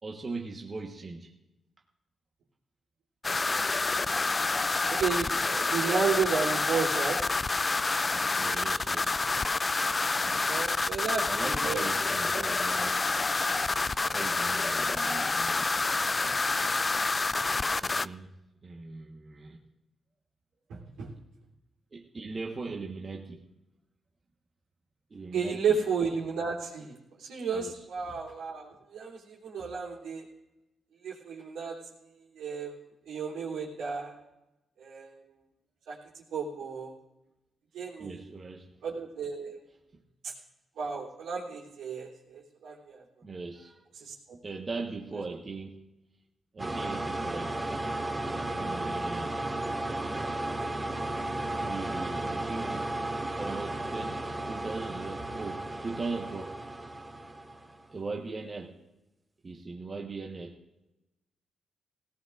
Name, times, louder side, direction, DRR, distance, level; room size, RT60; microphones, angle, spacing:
voice 1, 0.0-1.3 3.6-3.7 8.4-9.2 11.3-13.0 14.1-15.6 17.8-18.3 18.6-19.6 21.9-23.5 25.1-25.8 27.5-27.9 38.0-38.7 43.2-43.8 44.4-45.8 46.5-47.6 48.6-49.4 51.6-53.0 53.4-56.6 57.9-58.8 59.4-60.6, right 3 dB, 40° right, 0 dB, 1.3 m, -39 dB
sound 1, 3.2-18.1, left 3 dB, 35° left, 0.4 m, -28 dB
voice 2, 4.9-7.2 10.4-11.9 12.3-12.5 20.7-21.1 25.3-30.3 31.0-31.8 32.0-32.8 33.1-34.2 34.8-35.2 35.9-36.9 37.7-38.2 38.8-39.6 40.2-40.3 40.8-43.0 44.0-44.4, right 5 dB, 85° right, -4 dB, 3.3 m, -33 dB
sound 2, 46.6-57.8, right 2 dB, 25° right, 2.0 m, -34 dB
18.0 x 17.5 x 2.6 m, 0.97 s
supercardioid pair, 55°, 0 cm